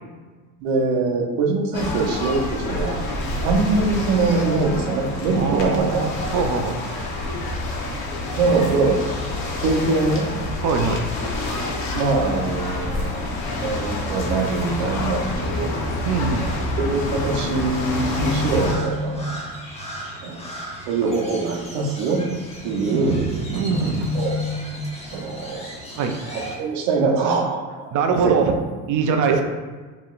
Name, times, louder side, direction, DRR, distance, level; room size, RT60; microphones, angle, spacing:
voice 1, 0.6-3.0 3.4-6.0 8.3-9.0 9.6-10.3 11.9-13.3 13.6-16.0 16.8-19.3 20.2-20.4 20.9-22.2 22.6-23.2 24.1-24.3 25.1-25.7 26.6-27.9 28.2-28.3 29.3-29.4, right 3 dB, 75° right, 1 dB, 1.0 m, -23 dB
sound 1, 1.7-18.7, left 2 dB, 55° left, 1.1 m, -27 dB
voice 2, 5.3-6.8 8.4-8.9 9.3-9.6 10.6-11.0 16.0-16.5 22.8-24.2 26.0-26.2 27.9-28.6 28.9-29.4, right 5 dB, 45° right, 5 dB, 0.6 m, -23 dB
Crow, 17.5-26.6, left 1 dB, 15° left, 1.0 m, -32 dB
5.3 x 3.0 x 2.5 m, 1.4 s
supercardioid pair, 95°, 45 cm